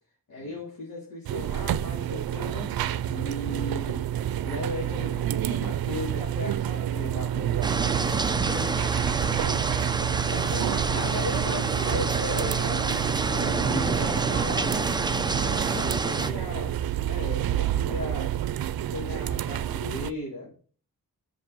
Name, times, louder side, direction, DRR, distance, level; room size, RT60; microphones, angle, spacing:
voice 1, 0.3-2.7 3.1-4.1 4.4-7.5 10.2-14.9 15.7-16.7 17.1-18.3 18.9-20.5, left 2 dB, 65° left, 3.1 m, -36 dB
sound 1, 1.3-20.1, right 11 dB, 90° right, 0.6 m, -28 dB
sound 2, 7.6-16.3, right 3 dB, 15° right, 0.4 m, -28 dB
voice 2, 8.3-10.6 15.4-16.5, left 2 dB, 25° left, 1.7 m, -44 dB
8.0 x 6.1 x 5.2 m
wide cardioid pair, 145°, 35 cm